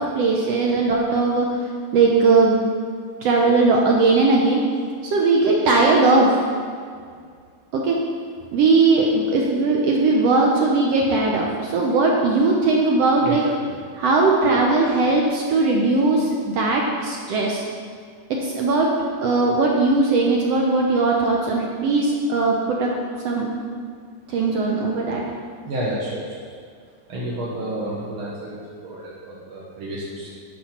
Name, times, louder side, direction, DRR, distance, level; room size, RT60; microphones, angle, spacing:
voice 1, 0.0-1.5 1.9-2.7 3.2-4.6 5.0-6.3 7.7-8.0 8.5-13.4 14.0-17.6 18.4-18.9 19.2-22.9 23.2-23.5 24.3-25.2, right 3 dB, 80° right, -1 dB, 1.4 m, -19 dB
voice 2, 13.2-13.5 25.6-26.3 27.1-30.3, right 1 dB, 55° right, -7 dB, 1.5 m, -30 dB
10.5 x 5.7 x 5.8 m, 2.1 s
omnidirectional pair, 4.0 m